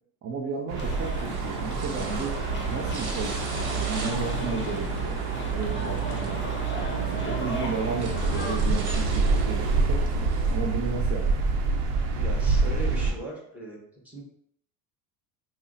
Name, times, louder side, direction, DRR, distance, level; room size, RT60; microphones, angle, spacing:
voice 1, 0.2-2.4 2.7-5.2 5.5-6.5 7.0-10.0 10.5-11.5, right 5 dB, 30° right, 0 dB, 0.4 m, -33 dB
sound 1, 0.7-13.1, right 4 dB, 65° right, 0.8 m, -27 dB
sound 2, 0.8-8.6, left 2 dB, 25° left, 0.7 m, -38 dB
sound 3, 0.8-10.6, right 3 dB, 50° right, 1.1 m, -42 dB
voice 2, 7.2-7.6 12.2-13.8 14.0-14.2, right 1 dB, 5° right, -3 dB, 1.0 m, -39 dB
5.3 x 2.1 x 2.5 m, 0.71 s
supercardioid pair, 90°, 49 cm